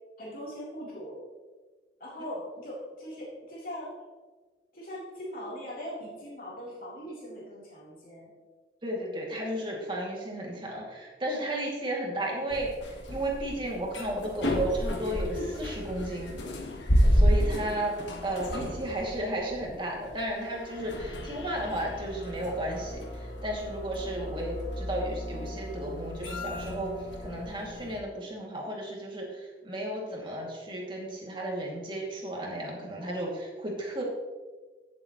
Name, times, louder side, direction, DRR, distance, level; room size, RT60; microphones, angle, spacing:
voice 1, 0.2-1.2 2.0-3.9 4.7-8.3, equal, 50° left, -6 dB, 3.5 m, -40 dB
voice 2, 8.8-12.7 13.1-16.3 17.1-17.9 18.2-26.9 27.2-34.0, right 1 dB, 30° right, -2 dB, 2.5 m, -33 dB
sound 1, 12.5-28.0, equal, 90° left, 1.7 m, -31 dB
16.0 x 7.5 x 3.1 m, 1.3 s
head